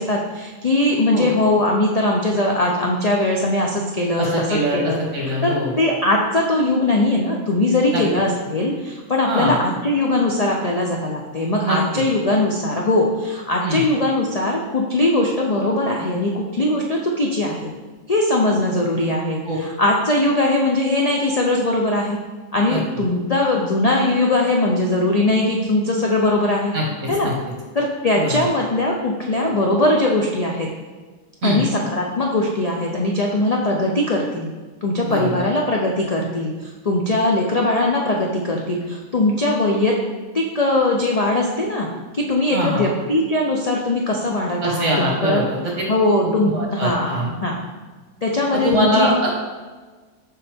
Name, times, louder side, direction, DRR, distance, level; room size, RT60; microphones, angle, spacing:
voice 1, 0.0-5.0 5.4-17.7 18.1-19.4 19.8-22.2 22.5-26.7 27.1-27.3 27.7-30.7 31.4-34.5 34.8-39.9 40.3-41.9 42.1-45.4 45.9-47.6 48.2-49.1, left 2 dB, 75° left, -1 dB, 0.3 m, -20 dB
voice 2, 4.2-5.7 7.9-8.0 9.3-9.6 11.6-12.0 13.6-13.8 19.5-19.6 22.7-22.8 26.7-27.3 28.2-28.4 31.4-31.6 35.0-35.4 42.5-42.8 44.6-45.7 46.5-47.3 48.6-49.3, equal, 50° right, -2 dB, 1.8 m, -22 dB
6.8 x 5.7 x 3.5 m, 1.3 s
omnidirectional pair, 1.6 m